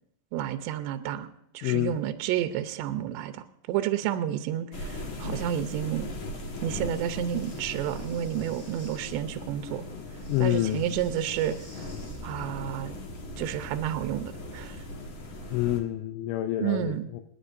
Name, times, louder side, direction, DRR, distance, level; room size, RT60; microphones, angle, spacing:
voice 1, 0.3-1.3 1.5-6.1 6.6-9.8 10.4-11.6 12.2-13.0 13.4-14.8 16.6-17.1, right 11 dB, 80° right, 8 dB, 2.8 m, -30 dB
voice 2, 1.6-2.0 10.3-10.8 15.5-17.2, left 14 dB, 85° left, 6 dB, 3.1 m, -27 dB
sound 1, 4.7-15.8, left 1 dB, 60° left, 1.3 m, -39 dB
Breathing, 6.7-9.2 10.1-12.2, left 1 dB, 20° left, 1.7 m, -55 dB
sound 2, 11.3-16.1, right 1 dB, 35° left, 6.0 m, -49 dB
29.0 x 9.8 x 2.6 m, 0.75 s
omnidirectional pair, 5.3 m